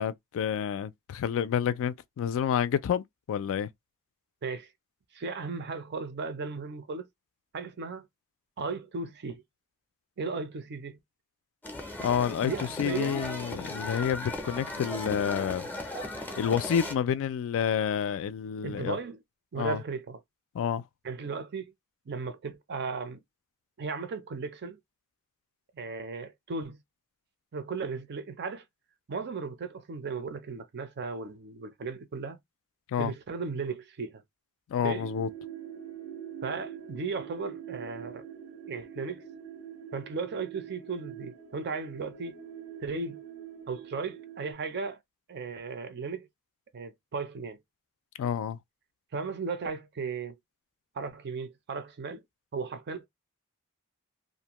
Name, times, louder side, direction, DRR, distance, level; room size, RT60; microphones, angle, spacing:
voice 1, 0.0-3.7 12.0-12.5 12.8-15.7 16.4-19.0 19.6-19.8 20.5-20.8 32.9-33.1 34.7-35.3 48.2-48.6, left 8 dB, 60° left, 0.3 m, -29 dB
voice 2, 5.1-7.1 7.5-8.1 8.6-9.4 10.2-11.0 12.4-13.2 18.6-19.2 19.5-20.2 21.0-21.7 22.1-23.2 23.8-24.8 25.7-26.8 27.5-28.6 29.1-32.4 33.0-34.2 34.8-35.1 36.4-38.3 38.7-39.2 39.9-42.4 42.8-43.2 43.7-45.0 45.3-46.3 46.7-47.6 49.1-50.4 50.9-52.2 52.5-53.1, right 4 dB, 50° right, 0.5 m, -36 dB
sound 1, 11.6-16.9, left 1 dB, 10° left, 0.5 m, -37 dB
sound 2, 35.0-44.5, right 8 dB, 90° right, 1.0 m, -44 dB
2.5 x 2.1 x 2.9 m
head